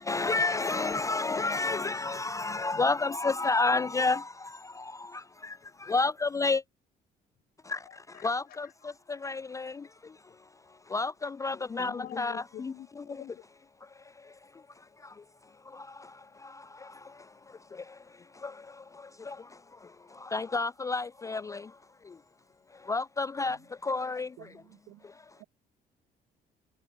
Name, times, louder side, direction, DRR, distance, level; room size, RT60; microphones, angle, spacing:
voice 1, 0.1-4.2 5.9-6.6 7.7-7.8 8.2-8.7 9.2-9.7 10.9-12.7 19.3-19.4 20.3-21.6 22.9-23.6 23.8-24.3, left 3 dB, 20° left, 0.3 m, -29 dB
voice 2, 7.9-8.6 11.8-13.4, left 12 dB, 60° left, 3.4 m, -47 dB
voice 3, 24.4-25.1 25.4-25.5, right 19 dB, 90° right, 5.0 m, -53 dB
cardioid pair, 110°, 17 cm